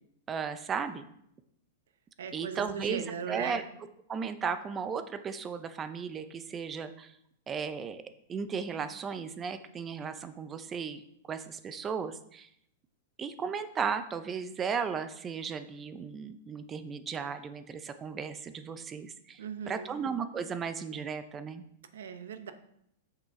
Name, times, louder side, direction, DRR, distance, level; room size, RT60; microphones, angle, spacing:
voice 1, 0.3-1.0 2.3-3.6 4.1-7.2 7.5-8.0 8.3-11.0 11.3-12.5 13.2-21.6, right 6 dB, 15° right, 11 dB, 0.5 m, -35 dB
voice 2, 2.2-3.6 19.4-19.9 21.9-22.5, right 7 dB, 85° right, 9 dB, 0.9 m, -38 dB
7.6 x 6.6 x 3.7 m, 0.73 s
supercardioid pair, 160°, 0 cm